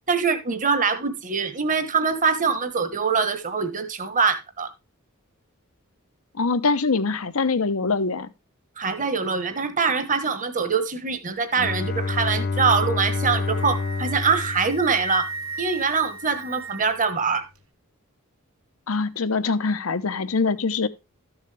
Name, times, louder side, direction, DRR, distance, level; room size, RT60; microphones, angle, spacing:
voice 1, 0.1-4.7 8.8-15.3 15.6-17.4, right 5 dB, 40° right, 1.3 m, -23 dB
voice 2, 6.3-8.3 18.9-20.9, left 4 dB, 85° left, 0.9 m, -23 dB
Bowed string instrument, 11.6-15.5, left 3 dB, 50° left, 0.6 m, -28 dB
Wind instrument woodwind instrument, 13.2-17.1, right 3 dB, 85° right, 1.6 m, -35 dB
13.0 x 7.3 x 3.3 m
head